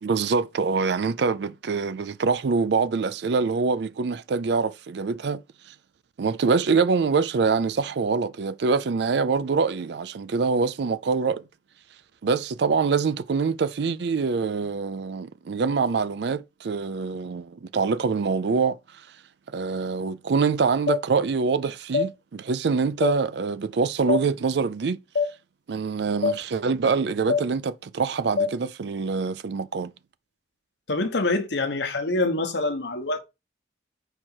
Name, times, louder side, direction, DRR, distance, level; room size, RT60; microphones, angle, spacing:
voice 1, 0.0-5.4 6.2-11.4 12.2-18.8 19.5-25.0 25.7-29.9, right 4 dB, 70° right, 0.4 m, -25 dB
sound 1, 20.9-21.0 21.9-22.1 23.0-23.2 24.1-24.2 25.2-25.3 26.2-26.4 27.3-27.5 28.4-28.5, left 5 dB, 55° left, 0.4 m, -23 dB
voice 2, 30.9-33.2, left 2 dB, 75° left, 1.0 m, -25 dB
4.9 x 4.5 x 4.4 m
head